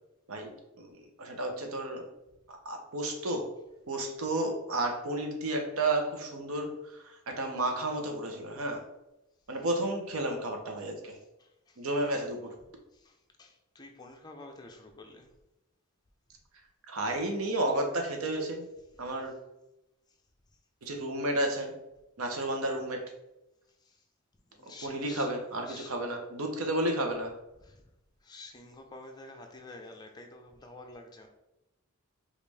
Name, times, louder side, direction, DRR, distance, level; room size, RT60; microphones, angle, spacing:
voice 1, 0.3-2.0 2.5-3.5 3.9-8.8 9.5-11.2 11.8-12.5 16.9-18.6 19.0-19.3 20.8-21.7 22.2-23.0 24.8-27.3, right 1 dB, 75° right, 4 dB, 0.8 m, -32 dB
voice 2, 11.1-11.8 12.9-15.3 23.8-24.0 24.5-25.3 25.6-26.0 27.6-27.8 28.2-31.3, left 2 dB, 20° left, 3 dB, 0.5 m, -49 dB
5.2 x 2.5 x 3.3 m, 0.93 s
head